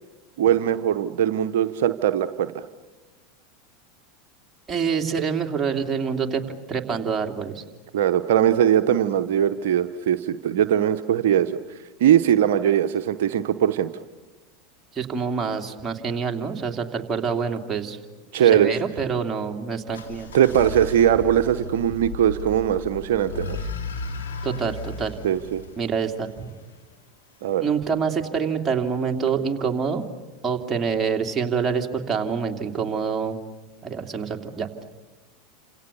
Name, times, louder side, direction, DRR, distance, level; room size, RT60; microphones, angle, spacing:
voice 1, 0.4-2.6 7.9-11.5 12.0-13.9 18.3-18.7 20.3-23.7 25.2-25.6 27.4-27.6, right 10 dB, 65° right, 8 dB, 0.9 m, -20 dB
voice 2, 4.7-6.4 6.7-7.6 14.9-18.0 18.3-20.3 24.4-25.1 25.8-26.5 27.6-30.1 30.4-33.4 33.8-34.7, right 6 dB, 20° right, 3 dB, 3.0 m, -26 dB
sound 1, 19.9-26.8, left 4 dB, 80° left, 3.8 m, -35 dB
29.0 x 27.0 x 7.0 m, 1.1 s
hypercardioid pair, 85°, 0 cm